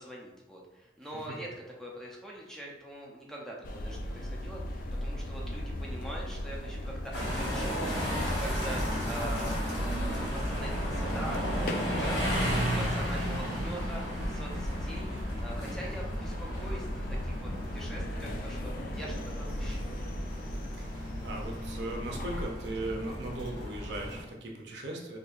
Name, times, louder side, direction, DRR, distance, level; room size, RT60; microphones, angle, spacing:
voice 1, 0.0-1.5 1.8-8.0 8.4-12.4 12.7-15.1 15.4-19.9, right 1 dB, 5° left, -3 dB, 0.5 m, -43 dB
sound 1, 3.6-22.5, equal, 50° left, 0.3 m, -37 dB
sound 2, 7.1-24.2, equal, 80° left, 1.0 m, -34 dB
voice 2, 20.8-25.2, right 2 dB, 75° right, 1 dB, 0.6 m, -38 dB
4.1 x 2.7 x 2.4 m, 1.0 s
head